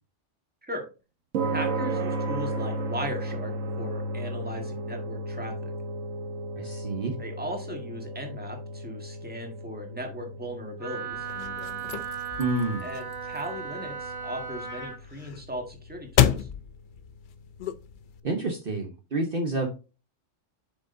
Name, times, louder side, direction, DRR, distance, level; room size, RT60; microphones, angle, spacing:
sound 1, 1.3-17.9, right 2 dB, 80° right, 1.5 m, -35 dB
voice 1, 1.5-5.7 7.2-11.3 12.8-16.5, equal, 5° right, 2 dB, 1.6 m, -37 dB
voice 2, 6.6-7.1 12.4-12.9 18.2-19.7, right 2 dB, 45° right, 3 dB, 1.2 m, -28 dB
Wind instrument woodwind instrument, 10.8-15.0, right 6 dB, 30° right, 1.6 m, -36 dB
Punch Foley, 11.1-18.2, left 10 dB, 55° left, 0.6 m, -31 dB
8.2 x 6.2 x 2.6 m, 0.31 s
omnidirectional pair, 1.3 m